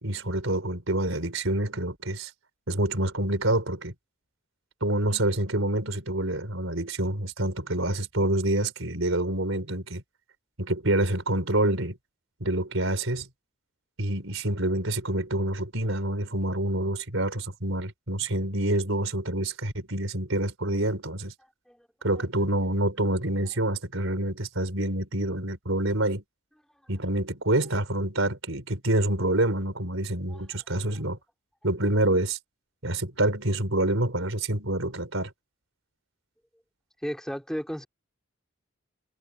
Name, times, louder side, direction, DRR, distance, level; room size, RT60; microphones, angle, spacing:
voice 1, 0.0-2.3 2.7-3.9 4.8-10.0 10.6-12.0 12.4-13.3 14.0-21.3 22.0-26.2 26.9-31.2 31.6-32.4 32.8-35.3, right 1 dB, 75° right, 4.2 m, -27 dB
voice 2, 37.0-37.8, equal, 5° left, 4.2 m, -34 dB
head